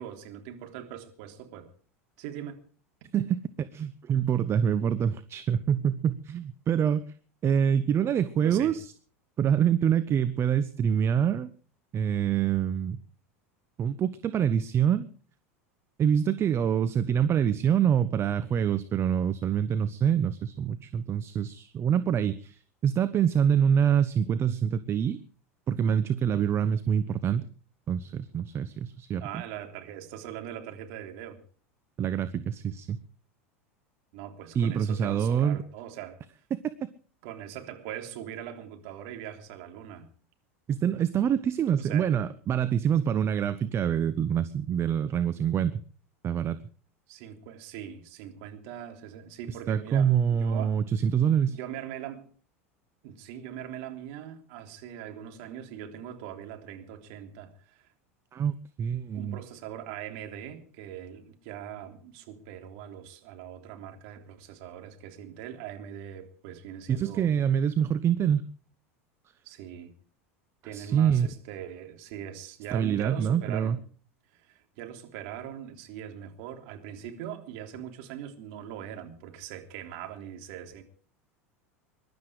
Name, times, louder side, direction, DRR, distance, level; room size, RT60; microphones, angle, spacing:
voice 1, 0.0-1.7 2.2-2.6 8.4-8.8 29.2-31.4 34.1-36.2 37.2-40.1 41.8-42.1 47.1-50.8 51.5-52.3 53.0-57.9 59.1-67.3 69.4-69.9 70.6-73.8 74.3-80.8, right 10 dB, 60° right, 3.4 m, -41 dB
voice 2, 3.1-7.0 7.4-8.9 9.4-11.5 11.9-13.0 13.8-15.1 16.0-25.2 25.7-27.5 27.9-29.4 32.0-33.0 34.5-35.6 40.7-45.8 46.2-46.6 49.5-51.6 58.3-59.4 66.9-68.4 70.7-71.3 72.7-73.8, right 8 dB, 35° right, 1.0 m, -26 dB
22.5 x 12.0 x 4.9 m
hypercardioid pair, 90°, 8 cm